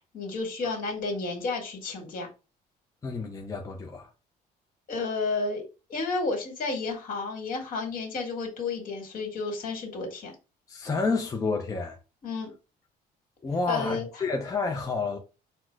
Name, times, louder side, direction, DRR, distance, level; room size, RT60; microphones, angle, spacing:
voice 1, 0.1-2.3 4.9-5.6 5.9-10.4 12.2-12.5 13.7-14.1, left 3 dB, 55° left, 1.9 m, -31 dB
voice 2, 3.0-4.1 10.7-12.0 13.4-15.2, left 3 dB, 20° left, 0.6 m, -29 dB
4.3 x 2.1 x 4.5 m
cardioid pair, 110°, 17 cm